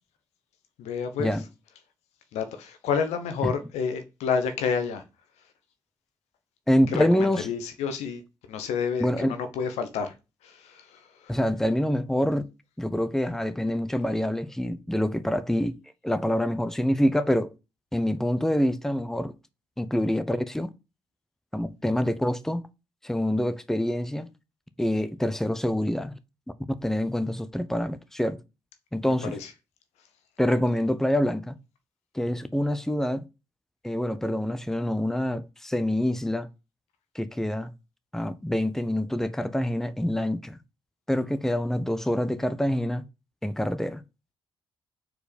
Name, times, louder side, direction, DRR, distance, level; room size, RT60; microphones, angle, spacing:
voice 1, 0.8-1.4 2.3-5.0 6.9-8.2 8.5-10.1 10.4-11.4 29.1-29.5, left 6 dB, 75° left, 1.0 m, -30 dB
voice 2, 6.7-7.4 9.0-9.3 11.3-12.5 12.8-15.8 16.0-17.5 17.9-19.3 19.8-20.7 21.5-22.6 23.0-24.3 24.8-26.1 26.8-28.4 28.9-29.3 30.4-31.6 32.1-33.2 33.8-36.5 37.1-37.7 38.1-40.6 41.1-43.0 43.4-44.0, left 1 dB, 5° left, 0.8 m, -26 dB
4.7 x 4.4 x 5.1 m
hypercardioid pair, 50°, 11 cm